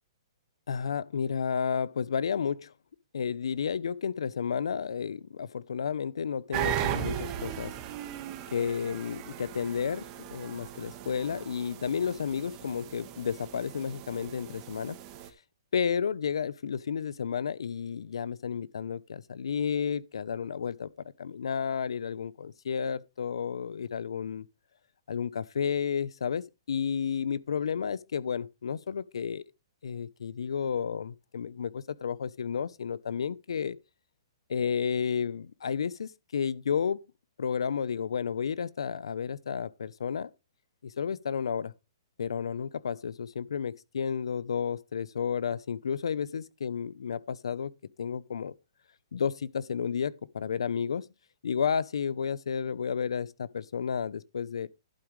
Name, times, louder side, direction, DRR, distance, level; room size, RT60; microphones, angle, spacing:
voice 1, 0.7-2.7 3.1-7.7 8.5-15.0 15.7-20.9 21.2-24.4 25.1-29.4 29.8-33.8 34.5-37.0 37.4-40.3 40.8-41.7 42.2-47.7 48.0-48.5 49.1-51.1 51.4-54.7, left 7 dB, 85° left, 0.7 m, -32 dB
sound 1, 6.5-15.3, right 11 dB, 25° right, 1.4 m, -37 dB
11.5 x 8.9 x 3.2 m
hypercardioid pair, 155°, 3 cm